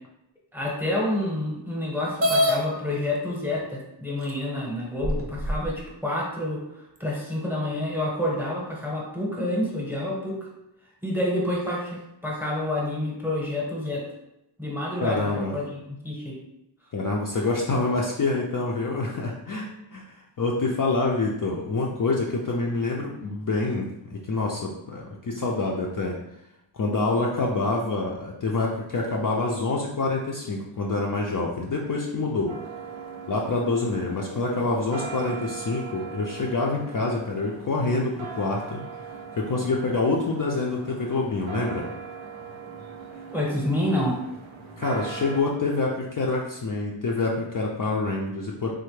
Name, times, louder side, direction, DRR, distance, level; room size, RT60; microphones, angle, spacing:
voice 1, 0.5-10.4 11.0-14.0 14.6-16.4 43.3-44.2, left 1 dB, 5° right, -3 dB, 0.9 m, -28 dB
sound 1, 2.2-2.6 3.6-3.7 4.3-4.4 5.0-5.7, left 1 dB, 30° right, 0.5 m, -23 dB
voice 2, 15.0-15.5 16.9-26.2 26.7-32.5 33.3-38.8 39.4-41.9 44.8-48.7, left 3 dB, 45° left, -2 dB, 0.4 m, -26 dB
sound 2, 32.5-45.4, right 5 dB, 80° right, 0.6 m, -40 dB
3.2 x 2.1 x 3.1 m, 0.86 s
wide cardioid pair, 70°, 47 cm